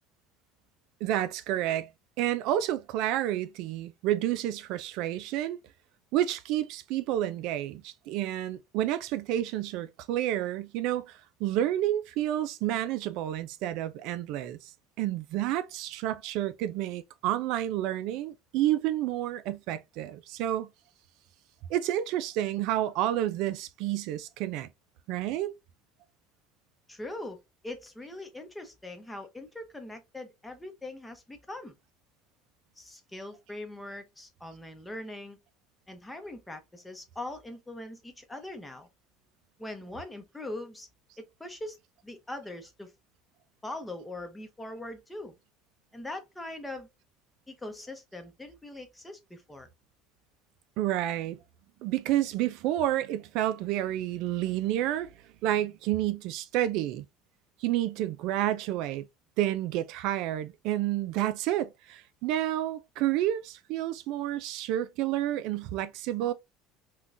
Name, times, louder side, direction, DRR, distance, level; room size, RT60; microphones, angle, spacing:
voice 1, 1.0-1.9 2.2-5.6 6.1-14.7 15.0-20.7 21.7-24.7 25.1-25.5 50.8-51.4 51.8-55.1 55.4-57.1 57.6-59.1 59.4-66.3, right 13 dB, 65° right, 0.3 m, -30 dB
voice 2, 26.9-31.7 32.8-35.4 35.9-38.9 39.6-40.9 41.2-41.8 42.0-42.9 43.6-45.3 45.9-46.9 47.5-49.7, left 1 dB, 10° left, 0.7 m, -41 dB
3.7 x 2.2 x 2.5 m
supercardioid pair, 120°, 0 cm